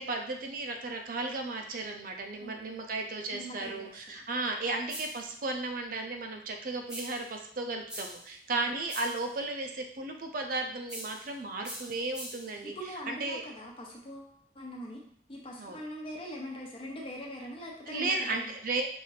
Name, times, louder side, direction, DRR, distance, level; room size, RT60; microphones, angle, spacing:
voice 1, 0.0-12.8 13.1-13.4 15.6-15.8 17.9-18.9, right 3 dB, 50° right, 3 dB, 0.5 m, -34 dB
voice 2, 2.4-2.9 3.3-4.2 8.7-8.8 12.6-15.0 15.3-18.5, equal, 30° left, -1 dB, 0.8 m, -42 dB
sound 1, 4.9-5.3 6.9-7.3 7.9-8.3 8.9-9.3 10.9-11.3 11.6-12.6, equal, 5° right, 0.7 m, -43 dB
5.5 x 2.6 x 3.2 m, 0.67 s
head